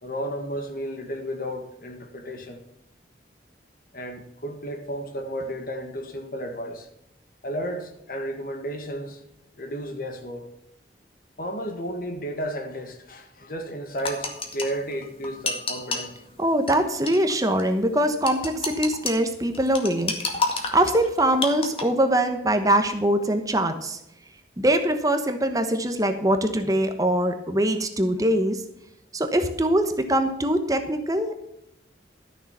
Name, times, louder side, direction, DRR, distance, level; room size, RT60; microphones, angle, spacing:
voice 1, 0.0-2.6 3.9-6.9 7.4-9.2 9.6-10.5 11.4-16.2, equal, 50° left, 1.7 m, -33 dB
sound 1, 14.0-16.1 16.7-16.8 17.1-17.3 17.6-17.7 18.3-19.1 19.5-21.8, left 3 dB, 30° left, 1.9 m, -29 dB
voice 2, 16.4-20.1 20.7-24.0 24.6-28.6 29.1-31.3, right 1 dB, 20° right, 1.1 m, -23 dB
13.0 x 6.6 x 7.3 m
head